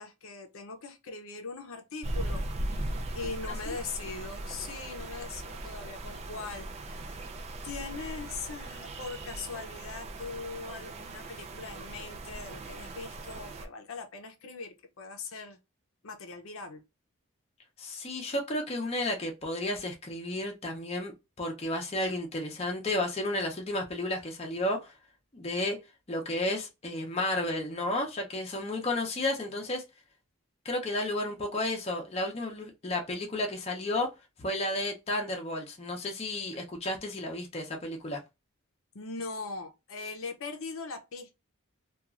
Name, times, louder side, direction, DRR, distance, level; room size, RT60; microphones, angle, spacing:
voice 1, 0.0-7.2 7.6-15.6 16.0-16.8 38.9-41.3, left 4 dB, 75° left, 0.6 m, -41 dB
sound 1, 2.0-13.7, right 1 dB, 30° right, 0.3 m, -39 dB
voice 2, 17.8-24.9 25.3-25.8 26.1-29.8 30.6-34.1 34.4-38.2, left 1 dB, 30° left, 0.6 m, -32 dB
2.9 x 2.3 x 2.4 m
head